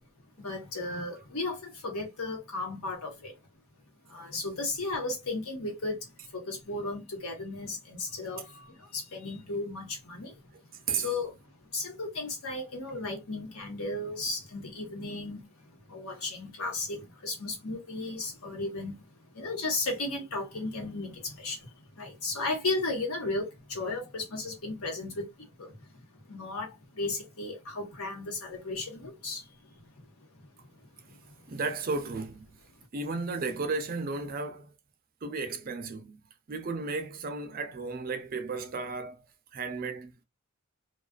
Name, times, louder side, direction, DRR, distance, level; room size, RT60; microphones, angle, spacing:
voice 1, 0.4-3.3 4.1-10.3 10.9-11.3 11.7-15.4 15.9-19.1 19.3-25.8 26.3-29.5 31.1-31.2, left 2 dB, 80° left, 1.1 m, -35 dB
voice 2, 31.5-32.4 32.9-34.7 35.2-36.2 36.5-39.2 39.5-40.2, right 4 dB, 40° right, 0.5 m, -34 dB
2.4 x 2.3 x 2.3 m
head